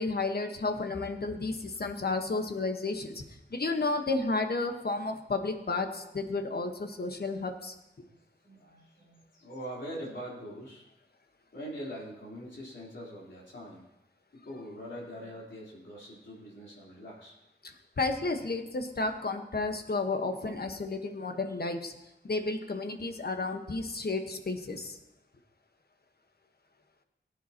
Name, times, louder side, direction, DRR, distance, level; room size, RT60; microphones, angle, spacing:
voice 1, 0.0-3.2 3.5-7.7 18.0-21.9 22.2-25.0, left 3 dB, 55° left, 6 dB, 1.3 m, -32 dB
voice 2, 8.4-10.8 11.5-13.8 14.4-17.3, equal, 85° left, -5 dB, 3.7 m, -43 dB
18.0 x 9.3 x 2.9 m, 0.92 s
cardioid pair, 45°, 19 cm